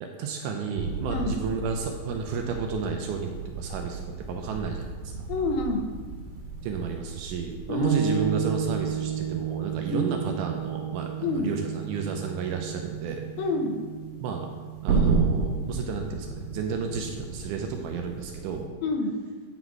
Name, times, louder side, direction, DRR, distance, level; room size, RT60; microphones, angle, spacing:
voice 1, 0.0-4.0 4.3-5.3 6.6-13.3 14.2-14.5 14.8-18.7, right 5 dB, 80° right, 3 dB, 1.8 m, -32 dB
sound 1, 0.8-18.6, right 5 dB, 55° right, 2.3 m, -33 dB
voice 2, 5.3-5.9 7.7-7.9 9.9-10.1 11.2-11.5 13.4-13.8 18.8-19.2, left 3 dB, 80° left, 3 dB, 2.6 m, -27 dB
sound 2, 7.8-17.5, right 8 dB, 30° left, 1.7 m, -34 dB
9.6 x 4.1 x 4.6 m, 1.5 s
omnidirectional pair, 4.2 m